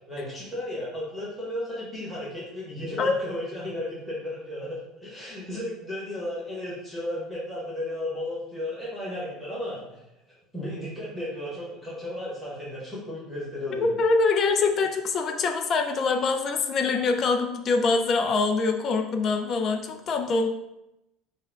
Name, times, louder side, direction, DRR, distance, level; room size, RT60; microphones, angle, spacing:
voice 1, 0.1-10.0 10.5-13.9, left 1 dB, ahead, -7 dB, 1.3 m, -34 dB
voice 2, 13.7-20.5, left 4 dB, 30° left, 5 dB, 0.4 m, -24 dB
6.5 x 2.3 x 3.6 m, 0.89 s
cardioid pair, 175°, 0 cm